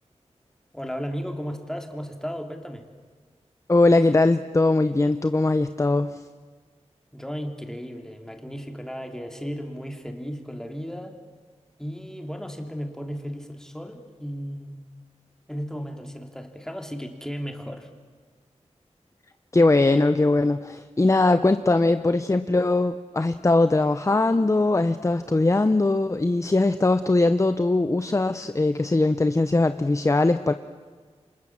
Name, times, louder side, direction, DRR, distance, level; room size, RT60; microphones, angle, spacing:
voice 1, 0.7-2.8 7.1-11.2 11.8-14.8 15.5-17.9, equal, 5° left, 4 dB, 3.2 m, -35 dB
voice 2, 3.7-6.2 19.5-30.5, left 2 dB, 25° left, 10 dB, 0.8 m, -21 dB
29.0 x 26.0 x 7.4 m, 1.5 s
wide cardioid pair, 90°, 12 cm